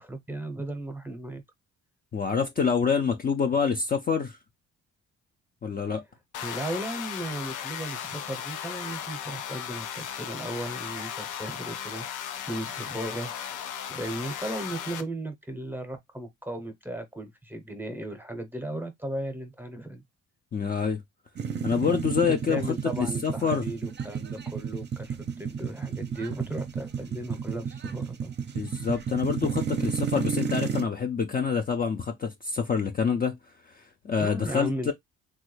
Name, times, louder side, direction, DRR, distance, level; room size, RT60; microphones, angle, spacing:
voice 1, 0.0-1.4 6.4-12.1 12.5-13.3 13.9-20.0 22.5-28.3 34.1-34.9, right 1 dB, 5° right, 0.8 m, -36 dB
voice 2, 2.1-4.4 5.6-6.0 20.5-21.0 21.6-22.7 23.0-23.6 28.5-33.4 33.7-34.9, left 6 dB, 30° left, 0.5 m, -27 dB
sound 1, 6.3-15.0, left 9 dB, 85° left, 0.6 m, -36 dB
sound 2, 21.4-30.8, right 6 dB, 35° right, 0.6 m, -32 dB
3.2 x 2.3 x 3.1 m
cardioid pair, 90°, 30 cm